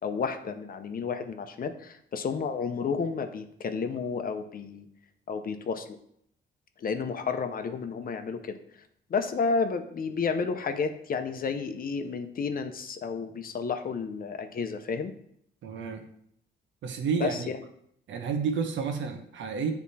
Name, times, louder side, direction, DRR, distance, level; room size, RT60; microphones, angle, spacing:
voice 1, 0.0-4.9 5.3-5.9 6.8-8.6 9.1-15.1 17.2-17.6, left 5 dB, 45° left, 8 dB, 0.8 m, -31 dB
voice 2, 15.6-16.0 16.8-17.5 18.1-19.7, right 5 dB, 70° right, 6 dB, 1.0 m, -30 dB
8.2 x 3.6 x 4.2 m, 0.70 s
cardioid pair, 90°, 20 cm